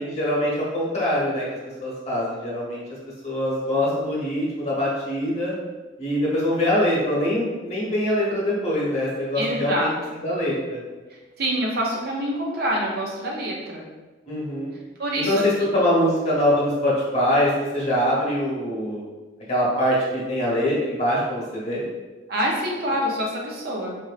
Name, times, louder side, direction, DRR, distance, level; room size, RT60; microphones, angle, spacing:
voice 1, 0.0-1.4 1.8-2.8 3.2-5.5 6.0-9.9 10.2-10.8 14.3-14.7 15.2-19.0 19.5-21.9, left 1 dB, 35° left, -6 dB, 1.1 m, -23 dB
voice 2, 9.4-9.9 11.1-13.9 15.0-15.7 22.3-24.0, equal, 60° right, -2 dB, 0.7 m, -26 dB
4.3 x 2.6 x 2.4 m, 1.2 s
head